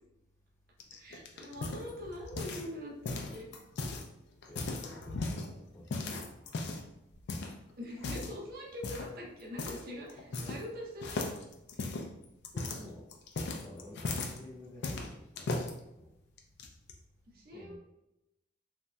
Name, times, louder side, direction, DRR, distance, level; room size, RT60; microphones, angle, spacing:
sound 1, 0.8-2.7 3.0-4.0 4.4-5.5 5.9-6.9 7.3-7.5 8.0-8.4 8.8-9.1 9.6-9.8 10.1-10.7 11.0-14.4 14.8-15.7 16.4-16.9, left 3 dB, 60° left, 0.4 m, -37 dB
voice 1, 0.9-3.5 7.8-11.3 17.3-17.7, left 1 dB, 50° right, -2 dB, 0.7 m, -43 dB
voice 2, 4.5-6.4 10.4-10.6 12.5-13.1 13.5-16.1 17.5-17.7, left 1 dB, 15° left, -7 dB, 0.7 m, -50 dB
3.1 x 2.7 x 2.3 m, 0.89 s
head